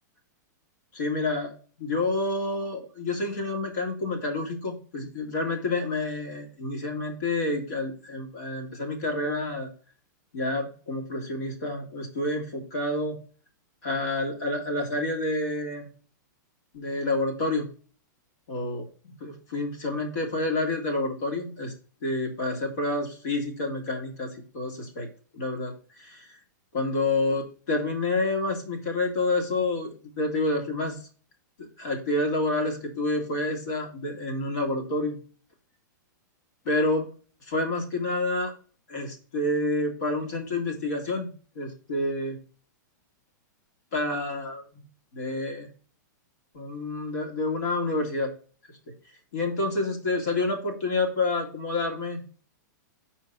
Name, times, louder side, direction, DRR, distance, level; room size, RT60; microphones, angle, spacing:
voice 1, 0.9-9.7 10.3-13.2 13.8-15.9 16.7-17.7 18.5-21.7 22.0-25.1 25.3-26.3 26.7-31.0 31.6-35.2 36.7-37.1 37.5-38.5 38.9-42.4 43.9-44.8 45.1-45.7 46.5-48.3 49.3-52.2, left 2 dB, 65° left, 1 dB, 2.1 m, -28 dB
5.6 x 4.4 x 5.9 m, 0.41 s
supercardioid pair, 165°, 10 cm